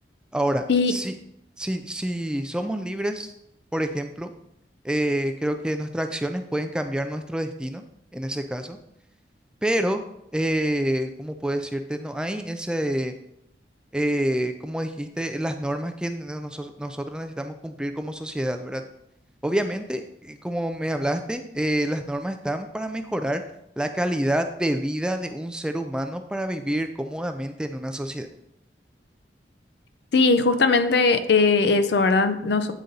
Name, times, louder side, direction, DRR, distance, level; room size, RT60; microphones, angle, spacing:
voice 1, 0.3-1.2 1.6-3.3 3.7-4.3 4.8-7.8 8.1-8.8 9.6-10.0 10.3-13.2 13.9-18.8 19.4-23.4 23.8-28.3, right 1 dB, 5° right, 6 dB, 0.3 m, -27 dB
voice 2, 30.1-32.7, left 4 dB, 70° left, 10 dB, 0.5 m, -19 dB
8.2 x 4.0 x 3.9 m, 0.79 s
head